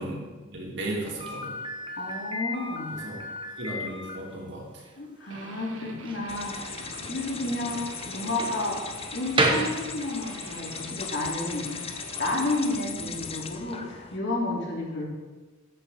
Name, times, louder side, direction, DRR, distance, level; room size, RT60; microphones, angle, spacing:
voice 1, 0.0-1.5 2.9-3.2 3.6-4.8 7.4-7.5 13.0-13.1, right 1 dB, 65° right, -3 dB, 3.2 m, -35 dB
Slam, 1.2-10.5, right 1 dB, 25° right, 1.3 m, -33 dB
voice 2, 2.0-3.3 5.0-6.8 7.1-15.0, left 2 dB, 60° left, -2 dB, 3.1 m, -31 dB
Guitar, 5.3-12.9, right 3 dB, 80° right, 1.1 m, -44 dB
sound 1, 6.3-14.2, left 6 dB, 30° left, 0.7 m, -38 dB
13.5 x 8.5 x 4.4 m, 1.3 s
head